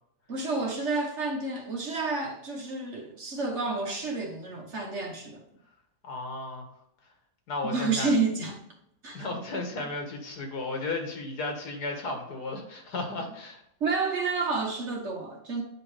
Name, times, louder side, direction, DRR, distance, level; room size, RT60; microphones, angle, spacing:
voice 1, 0.3-5.4 7.7-8.6 9.0-9.3 13.8-15.6, right 3 dB, 50° right, 1.4 m, -30 dB
voice 2, 6.0-6.6 7.5-8.1 9.1-13.6, left 2 dB, 80° left, 2.0 m, -34 dB
8.9 x 5.0 x 3.3 m
omnidirectional pair, 1.7 m